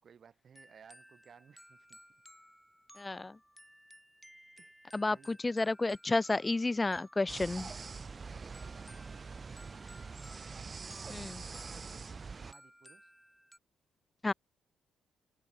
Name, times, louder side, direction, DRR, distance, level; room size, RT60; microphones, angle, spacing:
voice 1, 0.0-2.2 4.6-4.7 5.1-5.4 8.3-10.1 10.5-13.1, right 7 dB, 50° right, 2.9 m, -60 dB
sound 1, 0.5-13.6, equal, ahead, 2.7 m, -59 dB
voice 2, 3.0-3.4 4.9-7.7 11.1-11.4 14.2-14.3, left 2 dB, 20° left, 0.3 m, -31 dB
sound 2, 7.3-12.5, right 4 dB, 35° right, 1.1 m, -44 dB
open air
cardioid pair, 90°, 0 cm